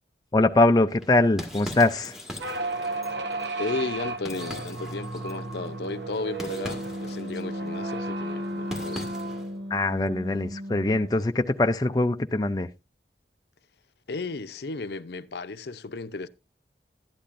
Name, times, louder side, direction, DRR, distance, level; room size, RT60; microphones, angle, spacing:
voice 1, 0.3-2.2 9.7-12.7, left 2 dB, 20° left, 0.4 m, -22 dB
sound 1, 0.9-9.6, equal, 5° right, 1.5 m, -42 dB
sound 2, 2.4-11.1, right 1 dB, 90° right, 1.0 m, -33 dB
voice 2, 3.6-9.2 14.1-16.3, left 3 dB, 70° left, 0.6 m, -34 dB
12.0 x 10.0 x 2.5 m
head